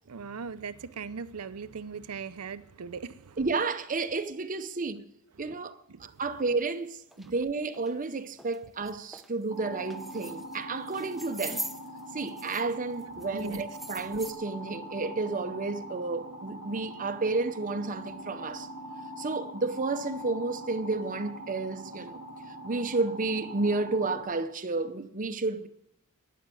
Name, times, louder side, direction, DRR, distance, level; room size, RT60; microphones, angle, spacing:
voice 1, 0.1-3.4 5.4-5.6 5.9-6.1 7.2-7.3 13.1-13.6 14.1-14.2, right 5 dB, 85° right, 0.7 m, -40 dB
voice 2, 3.4-5.0 5.4-11.6 12.1-18.7 19.2-22.2 22.6-25.7, right 3 dB, 35° right, 0.8 m, -31 dB
sound 1, 6.5-6.6 7.1-7.3 7.7-7.9 8.4-8.6 8.9-9.3 9.8-10.6 10.9-12.7 13.0-14.3, right 1 dB, ahead, 0.8 m, -41 dB
sound 2, 9.5-24.2, right 1 dB, 80° left, 6.0 m, -43 dB
12.0 x 9.3 x 7.7 m
head